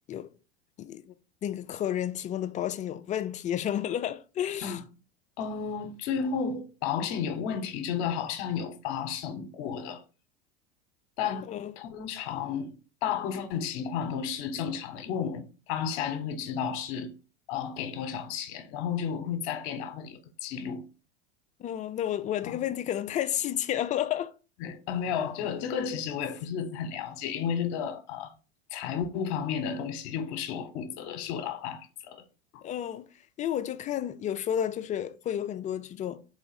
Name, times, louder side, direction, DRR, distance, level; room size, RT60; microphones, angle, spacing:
voice 1, 0.8-1.1 1.4-4.8 11.5-11.7 21.6-24.3 32.6-33.1 33.4-36.2, left 10 dB, 25° left, 0.4 m, -31 dB
voice 2, 5.4-10.0 11.2-11.5 11.8-17.1 17.5-20.8 22.5-22.6 24.6-28.3 28.7-32.2 32.5-32.6, left 7 dB, 55° left, 1.0 m, -32 dB
3.9 x 3.4 x 4.0 m
hypercardioid pair, 90°, 31 cm